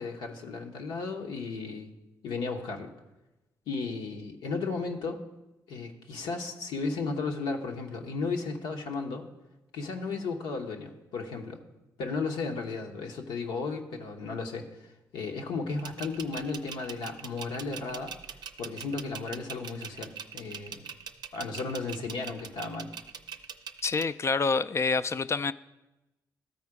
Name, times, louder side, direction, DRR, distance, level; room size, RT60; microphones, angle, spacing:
voice 1, 0.0-1.9 2.2-2.9 3.7-5.2 5.7-9.3 9.7-11.6 12.0-18.1 18.6-20.9 21.3-22.9, left 4 dB, 80° left, 3 dB, 0.9 m, -34 dB
sound 1, 15.7-24.0, right 7 dB, 65° right, 0.5 m, -41 dB
voice 2, 23.8-25.5, left 4 dB, 35° left, 15 dB, 0.3 m, -27 dB
13.0 x 4.3 x 4.8 m, 1.0 s
supercardioid pair, 55°, 8 cm